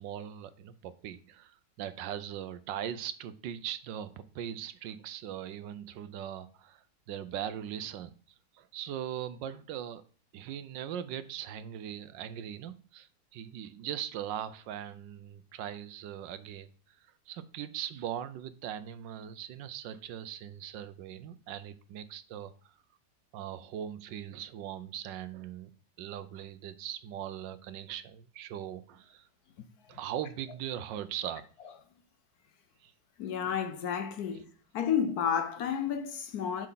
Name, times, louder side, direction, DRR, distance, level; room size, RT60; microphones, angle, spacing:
voice 1, 0.0-8.1 8.5-10.0 10.3-16.7 17.3-22.5 23.3-29.3 29.9-31.5 32.8-32.9, right 10 dB, 75° right, 1.3 m, -40 dB
voice 2, 33.2-34.5 34.7-36.7, left 8 dB, 65° left, 1.1 m, -31 dB
7.5 x 6.5 x 3.9 m
omnidirectional pair, 2.0 m